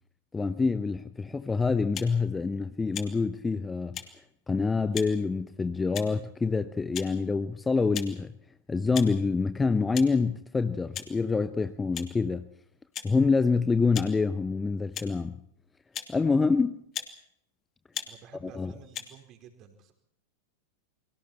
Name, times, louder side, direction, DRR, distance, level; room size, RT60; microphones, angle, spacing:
voice 1, 0.3-4.0 4.5-8.3 8.7-12.5 13.0-15.4 16.1-16.7 18.5-18.7, left 4 dB, 10° left, 0.9 m, -26 dB
sound 1, 1.9-2.1 2.9-3.1 3.9-4.1 4.9-5.1 5.9-6.2 6.9-7.1 7.9-8.1 8.9-9.1 9.9-10.1 10.9-11.1 11.9-12.1 12.9-13.1 13.9-14.1 14.9-15.1 15.9-16.1 16.9-17.1 17.9-18.1 18.9-19.1, left 10 dB, 30° left, 2.6 m, -36 dB
voice 2, 18.1-19.9, right 8 dB, 35° right, 4.9 m, -51 dB
29.0 x 24.0 x 4.4 m
figure-of-eight pair, 90°, 0 cm